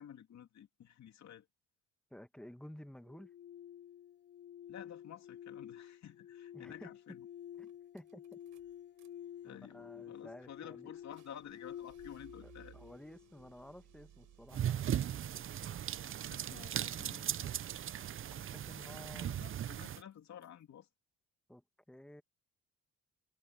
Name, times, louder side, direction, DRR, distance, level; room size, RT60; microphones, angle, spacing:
voice 1, 0.0-1.5 4.7-7.3 9.4-12.7 16.2-17.6 19.1-20.9, left 9 dB, 65° left, 3.2 m, -52 dB
voice 2, 2.1-3.3 6.5-6.9 7.6-7.7 7.9-8.4 9.5-10.9 12.4-14.8 18.3-19.3 21.5-22.2, left 1 dB, 5° left, 1.2 m, -53 dB
sound 1, 3.0-14.1, left 10 dB, 40° left, 0.5 m, -51 dB
sound 2, 7.1-7.2 7.5-9.1 9.4-17.2 18.7-19.4 19.6-20.6, right 12 dB, 80° right, 4.5 m, -63 dB
sound 3, 14.5-20.0, right 10 dB, 45° right, 0.6 m, -38 dB
cardioid pair, 90°, 30 cm